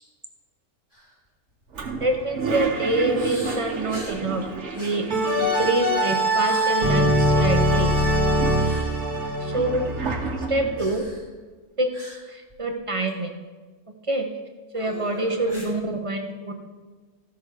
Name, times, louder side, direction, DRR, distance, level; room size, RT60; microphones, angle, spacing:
sound 1, 0.9-1.1 1.5-1.7 3.1-4.2 4.7-5.9 6.3-6.7 7.8-8.2 8.5-8.9 10.8-11.3 11.9-12.2 12.5-12.6 13.1-13.2 14.7-15.7, right 1 dB, 15° left, 3.0 m, -40 dB
Toilet flush, 1.7-6.1 6.4-6.5 6.7-7.5 8.0-10.9, right 4 dB, 55° right, 1.3 m, -32 dB
voice 1, 2.0-4.4 4.7-5.0 5.3-7.9 9.4-9.9 10.5-11.0 11.8-13.3 14.1-14.3 14.7-16.5, right 2 dB, 35° right, 4 dB, 0.6 m, -26 dB
sound 2, 2.0-2.5 5.1-10.8, equal, 80° right, 1.7 m, -22 dB
14.0 x 5.9 x 4.8 m, 1.4 s
omnidirectional pair, 1.6 m